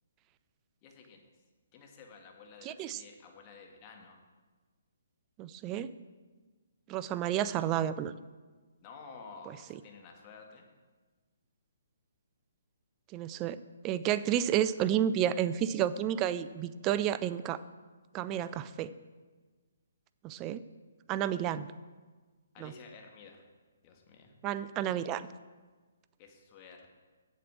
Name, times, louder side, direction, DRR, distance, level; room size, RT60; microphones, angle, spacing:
voice 1, 0.8-1.2 1.7-4.2 8.8-10.6 22.5-23.4 23.8-24.3 26.2-26.9, left 5 dB, 30° left, 2 dB, 1.6 m, -52 dB
voice 2, 2.6-3.0 5.4-5.9 6.9-8.1 13.1-13.6 13.8-17.6 18.1-18.9 20.2-20.6 21.1-21.7 22.6-22.7 24.4-25.3, right 10 dB, 25° right, 14 dB, 0.4 m, -31 dB
8.1 x 7.7 x 6.1 m, 1.4 s
hypercardioid pair, 145°, 0 cm